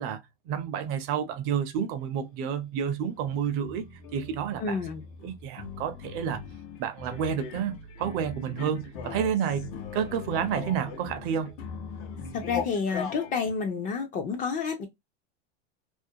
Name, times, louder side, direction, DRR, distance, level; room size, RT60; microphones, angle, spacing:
voice 1, 0.0-3.9 4.1-4.8 5.2-6.4 6.8-11.6, right 8 dB, 40° right, 0.5 m, -30 dB
sound 1, 2.0-2.4 2.9-13.5, left 6 dB, 70° left, 0.9 m, -40 dB
voice 2, 4.6-5.0 12.3-14.9, left 5 dB, 25° left, 0.4 m, -29 dB
2.5 x 2.1 x 2.7 m
supercardioid pair, 135°, 34 cm